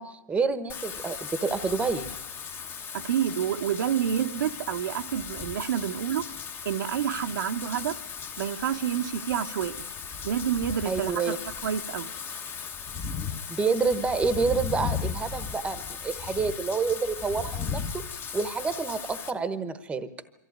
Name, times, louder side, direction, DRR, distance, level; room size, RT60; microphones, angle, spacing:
voice 1, 0.0-2.1 10.8-11.4 13.5-20.1, right 4 dB, 10° right, 13 dB, 1.1 m, -28 dB
Wind / Rain, 0.7-19.3, left 6 dB, 20° left, 1.1 m, -36 dB
voice 2, 2.9-6.2 6.6-8.0 8.4-9.8 10.2-11.3 11.6-12.1, right 9 dB, 70° right, 7 dB, 1.0 m, -28 dB
24.0 x 14.5 x 9.4 m, 1.0 s
hypercardioid pair, 130°, 11 cm